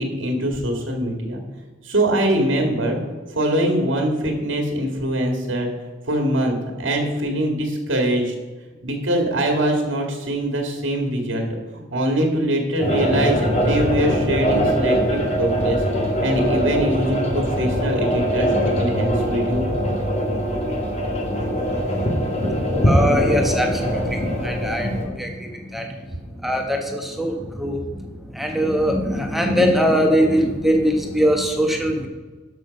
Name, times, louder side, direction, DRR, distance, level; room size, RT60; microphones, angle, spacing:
voice 1, 0.0-1.4 1.8-3.0 3.3-5.7 6.1-8.3 8.8-11.5 11.7-15.8 16.2-19.7, right 1 dB, 75° right, 2 dB, 2.0 m, -23 dB
sound 1, 12.8-25.0, equal, 35° left, 1.9 m, -22 dB
voice 2, 22.4-25.8 26.4-27.8 28.3-32.1, equal, ahead, 2 dB, 1.4 m, -21 dB
12.5 x 6.2 x 5.2 m, 1.2 s
head